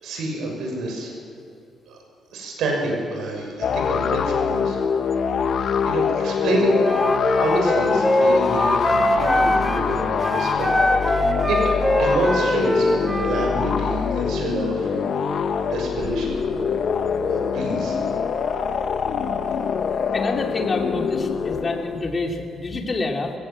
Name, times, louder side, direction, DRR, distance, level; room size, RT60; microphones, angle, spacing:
voice 1, 0.0-1.1 1.9-2.0 2.3-5.2 5.8-10.7 11.1-15.4 15.7-16.8 17.3-18.0, right 1 dB, 80° right, 1 dB, 6.4 m, -27 dB
sound 1, 3.6-22.0, left 6 dB, 60° left, 1.1 m, -24 dB
Wind instrument woodwind instrument, 6.8-9.9 10.2-13.6, equal, 5° right, 1.9 m, -22 dB
voice 2, 20.1-23.3, left 3 dB, 35° left, 2 dB, 2.8 m, -27 dB
22.5 x 16.5 x 7.6 m, 2.7 s
cardioid pair, 90°, 0 cm